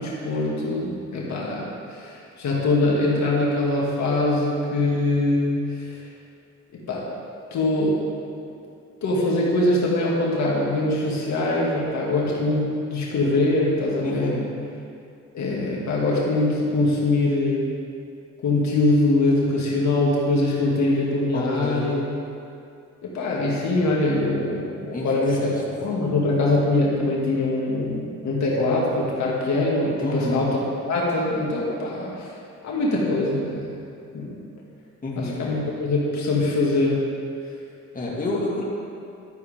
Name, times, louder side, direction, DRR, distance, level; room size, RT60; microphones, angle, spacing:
voice 1, 0.0-6.0 6.9-7.1 7.5-8.0 9.0-14.4 15.3-17.7 18.4-22.0 23.0-30.6 30.9-32.3 32.6-33.8 34.1-34.4 35.2-37.0, left 2 dB, 65° left, -4 dB, 2.4 m, -23 dB
voice 2, 14.0-14.4 21.3-22.0 24.9-25.1 25.4-25.5 30.0-30.4 35.0-35.4 37.9-38.6, left 2 dB, 25° left, -5 dB, 2.3 m, -28 dB
12.0 x 9.7 x 3.7 m, 2.5 s
cardioid pair, 90°, 30 cm